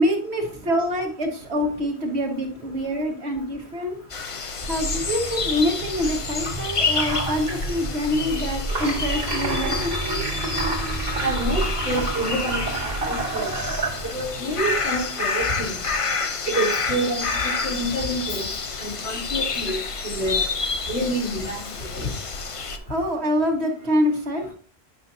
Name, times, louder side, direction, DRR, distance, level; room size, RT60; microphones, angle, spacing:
voice 1, 0.0-4.0 4.6-10.3 22.9-24.5, equal, 80° right, 1 dB, 1.9 m, -25 dB
sound 1, 4.1-22.8, left 4 dB, 35° left, 0.6 m, -29 dB
sound 2, 4.6-14.4, right 2 dB, 55° right, 1.9 m, -29 dB
voice 2, 11.2-13.2 14.1-15.7 16.4-17.2 17.6-18.5 18.8-20.4 20.9-21.6 21.9-22.1, right 1 dB, 75° left, -4 dB, 3.4 m, -27 dB
9.1 x 5.8 x 2.7 m, 0.43 s
omnidirectional pair, 1.1 m